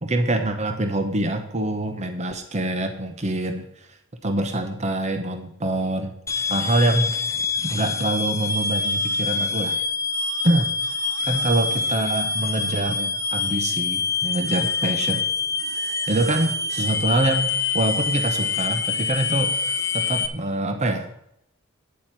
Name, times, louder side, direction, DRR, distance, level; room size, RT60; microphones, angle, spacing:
voice 1, 0.0-3.9 4.2-6.2 6.5-7.2 7.6-9.8 10.4-15.2 15.7-19.7 19.9-21.2, right 1 dB, 35° right, 7 dB, 1.0 m, -25 dB
sound 1, 6.3-20.3, left 4 dB, 15° left, 0.7 m, -25 dB
9.5 x 7.2 x 5.9 m, 0.77 s
head